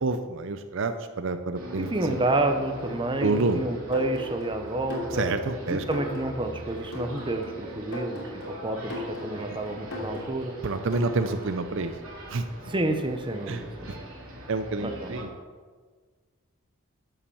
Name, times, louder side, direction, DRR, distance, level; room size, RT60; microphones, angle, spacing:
voice 1, 0.0-2.2 3.2-3.6 5.1-5.8 10.6-11.9 12.3-12.4 13.5-13.6 14.5-15.3, right 3 dB, 60° right, 8 dB, 0.6 m, -28 dB
sound 1, 1.5-15.2, equal, 80° right, 3.0 m, -41 dB
voice 2, 1.8-5.2 5.7-10.5 12.6-14.0 14.8-15.2, right 2 dB, 25° right, 6 dB, 0.8 m, -29 dB
sound 2, 3.9-11.7, left 1 dB, 85° left, 3.2 m, -38 dB
11.5 x 5.8 x 7.0 m, 1.5 s
head